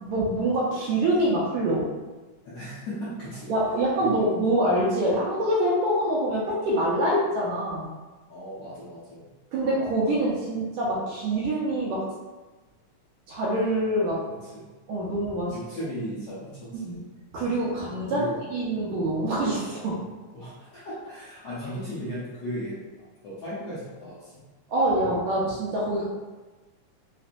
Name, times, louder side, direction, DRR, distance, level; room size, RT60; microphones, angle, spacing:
voice 1, 0.0-1.9 3.5-7.9 9.5-12.0 13.3-14.2 14.9-15.8 16.7-17.0 17.3-18.2 18.5-20.1 24.7-26.0, right 1 dB, 80° right, -5 dB, 1.8 m, -25 dB
voice 2, 2.5-3.5 4.0-4.3 8.3-9.3 14.4-14.7 15.5-17.0 18.1-18.4 20.3-22.9 23.2-24.5, equal, 70° left, -10 dB, 1.6 m, -36 dB
5.7 x 2.1 x 2.5 m, 1.2 s
omnidirectional pair, 3.7 m